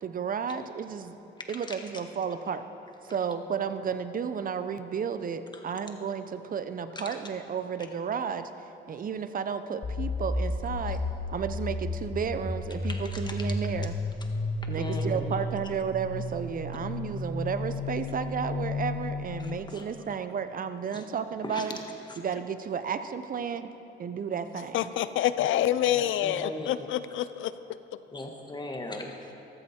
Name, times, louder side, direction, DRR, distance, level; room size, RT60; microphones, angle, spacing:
voice 1, 0.0-1.2 1.5-2.7 3.0-11.0 11.3-13.9 14.7-21.8 22.2-24.9, right 6 dB, 45° right, 10 dB, 0.8 m, -33 dB
sound 1, 9.8-19.6, left 2 dB, 40° left, 2.2 m, -33 dB
voice 2, 12.8-13.4 14.7-15.3 19.4-19.9 20.9-21.0 21.4-21.7 22.1-22.2 25.9-26.7 28.1-29.3, left 2 dB, 20° left, 2 dB, 1.7 m, -39 dB
voice 3, 24.7-27.5, left 12 dB, 80° left, 14 dB, 0.6 m, -27 dB
14.5 x 13.5 x 4.4 m, 2.9 s
cardioid pair, 90°, 20 cm